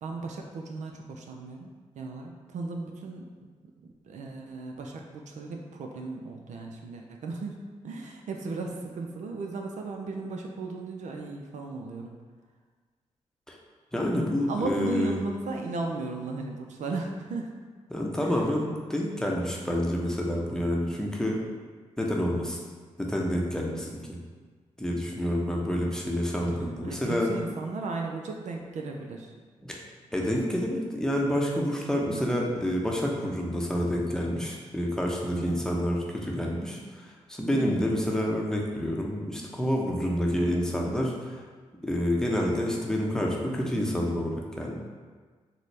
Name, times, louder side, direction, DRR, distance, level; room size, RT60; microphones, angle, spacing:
voice 1, 0.0-3.5 4.0-12.2 14.5-17.5 18.2-18.4 26.4-29.3 30.2-30.3 35.3-35.6 37.5-37.7, right 3 dB, 70° right, 2 dB, 0.4 m, -36 dB
voice 2, 13.9-15.2 17.9-21.4 22.0-22.6 23.0-24.2 24.8-27.3 29.6-29.8 30.1-41.4 41.8-44.7, equal, 5° left, -2 dB, 0.7 m, -28 dB
4.1 x 2.0 x 3.2 m, 1.5 s
supercardioid pair, 45°, 13 cm